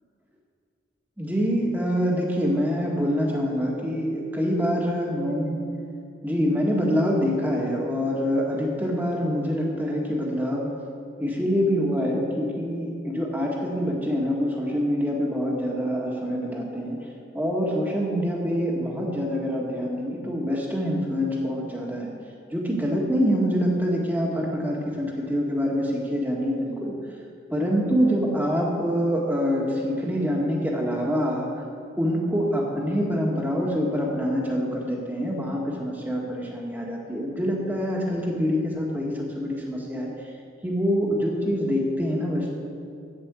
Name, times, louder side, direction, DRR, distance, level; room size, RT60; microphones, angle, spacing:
voice 1, 1.2-5.6 6.2-10.7 11.2-17.0 17.3-22.1 22.5-26.9 27.5-31.5 32.0-40.1 40.6-42.5, equal, 10° right, -2 dB, 1.5 m, -25 dB
8.5 x 7.5 x 8.1 m, 2.4 s
head